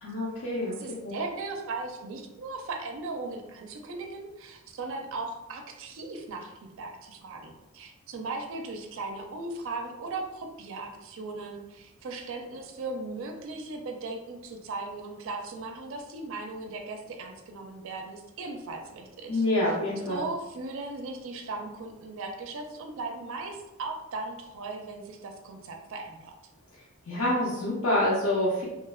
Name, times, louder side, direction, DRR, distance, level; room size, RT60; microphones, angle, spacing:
voice 1, 0.0-0.7 1.0-1.1 19.3-20.2 27.1-28.6, left 1 dB, 80° left, -7 dB, 0.6 m, -27 dB
voice 2, 0.7-19.8 20.1-26.3, right 3 dB, 65° right, 3 dB, 0.4 m, -38 dB
3.1 x 2.1 x 2.3 m, 1.0 s
head